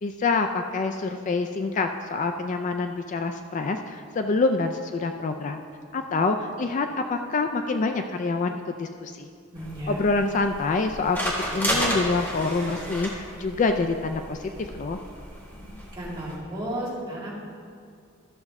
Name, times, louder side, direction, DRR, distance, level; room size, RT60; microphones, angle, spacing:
voice 1, 0.0-5.6 5.9-9.3 9.9-11.2 11.5-15.0, left 3 dB, 35° left, 6 dB, 0.3 m, -26 dB
sound 1, 9.5-16.4, equal, 10° left, 1.5 m, -32 dB
voice 2, 9.5-10.0 15.9-17.3, right 1 dB, 20° right, -7 dB, 2.1 m, -33 dB
13.0 x 6.5 x 3.5 m, 2.3 s
head